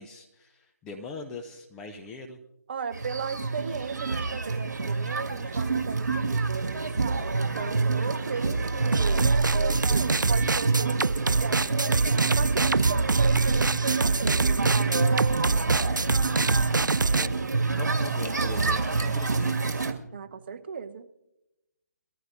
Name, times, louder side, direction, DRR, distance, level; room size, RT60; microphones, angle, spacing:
voice 1, 0.0-2.4 16.1-17.5 17.8-19.6, left 3 dB, 5° left, 2 dB, 0.4 m, -42 dB
voice 2, 2.7-12.0 12.3-14.7 20.1-21.1, right 6 dB, 35° right, 8 dB, 0.9 m, -36 dB
sound 1, 2.9-19.9, right 4 dB, 65° right, 1.8 m, -27 dB
sound 2, 8.9-17.3, right 3 dB, 90° right, 0.4 m, -25 dB
23.0 x 14.5 x 2.6 m, 0.89 s
figure-of-eight pair, 155°, 10 cm